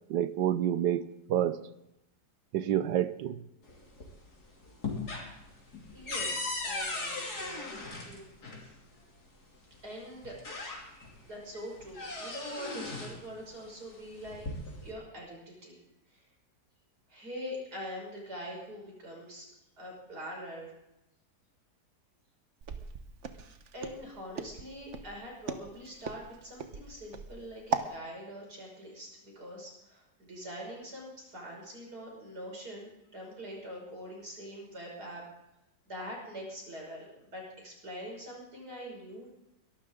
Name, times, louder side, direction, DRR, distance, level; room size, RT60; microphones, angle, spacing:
voice 1, 0.1-1.0 1.3-1.6 2.5-3.4, right 11 dB, 85° right, 14 dB, 1.4 m, -28 dB
sound 1, 3.7-4.3 4.6-8.6 9.7-9.8 10.2-11.2 11.5-13.2 14.1-14.9, left 3 dB, 65° left, 3.3 m, -38 dB
voice 2, 5.9-8.2 8.6-8.7 9.0-9.1 9.8-10.4 11.2-14.5 14.8-15.7 16.1-16.2 17.1-19.5 19.8-20.7 23.7-35.2 35.9-39.3, equal, 65° right, -1 dB, 6.3 m, -44 dB
Walk footsteps, 22.6-27.9, right 5 dB, 50° right, 1.3 m, -38 dB
22.5 x 12.5 x 3.7 m, 0.88 s
omnidirectional pair, 1.8 m